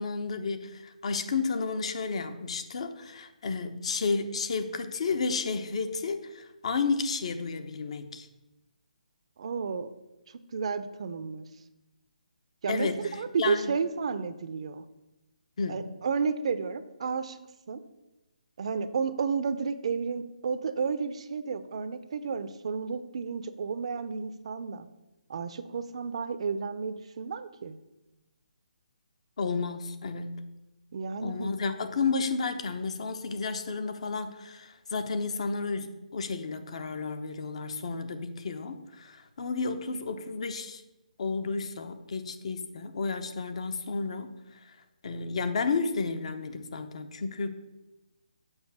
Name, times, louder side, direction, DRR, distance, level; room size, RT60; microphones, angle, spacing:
voice 1, 0.0-8.3 12.7-13.7 15.6-15.9 29.4-30.5 31.2-40.8 41.2-44.3 45.0-47.5, left 4 dB, 50° left, 9 dB, 0.8 m, -32 dB
voice 2, 9.4-9.9 10.5-11.5 12.6-12.9 13.2-14.8 15.7-17.4 17.7-17.8 18.6-24.9 25.3-27.8 30.9-31.5, right 5 dB, 45° right, 12 dB, 0.6 m, -32 dB
7.2 x 5.5 x 6.6 m, 0.99 s
hypercardioid pair, 165°, 4 cm